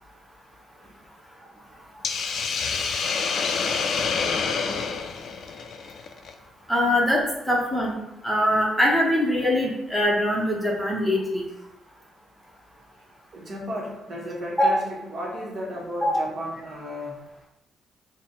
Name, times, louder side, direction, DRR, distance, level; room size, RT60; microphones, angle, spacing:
Hiss, 2.0-6.3, left 5 dB, 60° left, 0.3 m, -27 dB
voice 1, 6.7-8.0 8.2-11.4 14.6-14.8 16.0-16.2, left 1 dB, 5° left, -2 dB, 0.7 m, -22 dB
voice 2, 13.3-17.5, equal, 50° right, -2 dB, 0.9 m, -34 dB
4.0 x 2.0 x 3.8 m, 0.92 s
cardioid pair, 90°, 0 cm